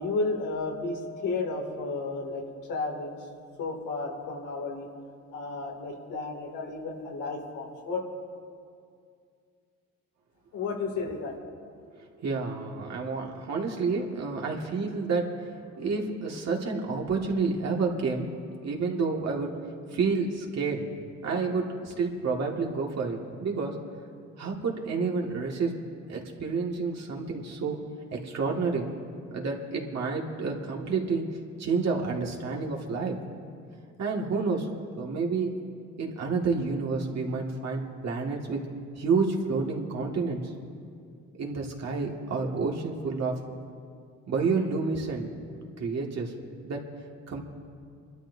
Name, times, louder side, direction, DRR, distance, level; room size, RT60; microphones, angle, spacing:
voice 1, 0.0-2.4 2.7-3.2 3.6-4.9 5.3-8.0 10.5-11.4, left 3 dB, 85° left, -1 dB, 2.6 m, -32 dB
voice 2, 12.2-15.3 15.8-18.3 18.6-19.5 19.9-20.9 21.2-23.8 24.4-25.7 26.1-27.8 28.1-28.9 29.3-31.3 31.6-33.2 34.0-34.7 34.9-35.6 36.0-38.6 39.0-40.5 41.4-43.3 44.3-45.3 45.8-46.3 46.6-46.8 47.3-47.4, right 4 dB, 60° right, -1 dB, 2.1 m, -29 dB
28.0 x 12.5 x 2.7 m, 2.3 s
cardioid pair, 90°, 30 cm